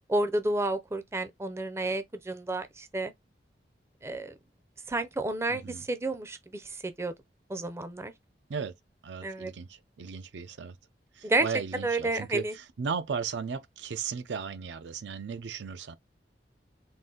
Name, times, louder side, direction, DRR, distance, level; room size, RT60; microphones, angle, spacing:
voice 1, 0.1-3.1 4.0-4.4 4.9-7.1 7.5-8.1 9.2-9.5 11.2-11.5 11.8-12.5, right 2 dB, 15° right, 0.5 m, -30 dB
voice 2, 5.5-5.8 8.5-8.7 9.0-10.8 11.2-16.0, right 6 dB, 80° right, 0.5 m, -36 dB
3.9 x 2.5 x 3.7 m
head